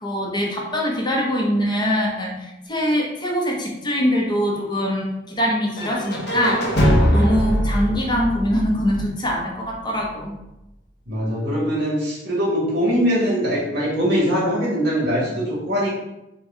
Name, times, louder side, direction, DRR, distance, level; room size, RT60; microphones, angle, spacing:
voice 1, 0.0-6.6 7.0-10.3, equal, 25° left, -2 dB, 0.7 m, -23 dB
sound 1, 5.8-9.7, equal, 65° left, 0.8 m, -21 dB
voice 2, 11.1-15.9, equal, 65° right, -5 dB, 1.5 m, -22 dB
4.3 x 2.3 x 3.5 m, 0.93 s
head